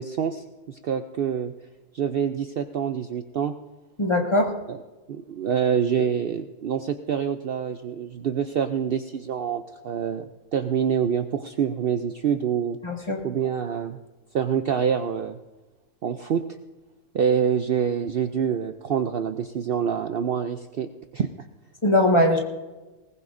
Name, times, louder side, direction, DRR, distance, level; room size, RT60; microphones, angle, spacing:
voice 1, 0.0-1.5 1.9-3.5 4.7-4.8 5.1-12.8 13.2-14.0 14.3-15.4 16.0-16.6 17.1-21.3, right 8 dB, 70° right, 8 dB, 0.5 m, -26 dB
voice 2, 4.0-4.5 12.8-13.2 21.8-22.4, left 1 dB, 20° left, 0 dB, 1.7 m, -20 dB
20.5 x 19.5 x 2.6 m, 1.2 s
omnidirectional pair, 1.7 m